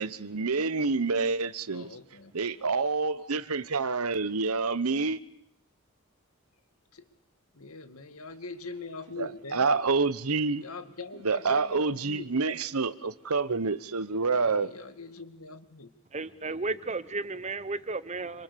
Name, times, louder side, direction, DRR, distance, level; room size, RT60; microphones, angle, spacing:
voice 1, 0.0-1.9 2.3-5.2 9.2-10.6 11.2-14.7, right 4 dB, 80° right, 1.0 m, -28 dB
voice 2, 1.7-2.3 6.9-7.0 7.5-9.7 10.6-12.3 14.3-15.9, left 3 dB, 75° left, 2.0 m, -42 dB
voice 3, 16.1-18.4, right 3 dB, 30° right, 1.0 m, -33 dB
27.0 x 25.5 x 6.9 m
head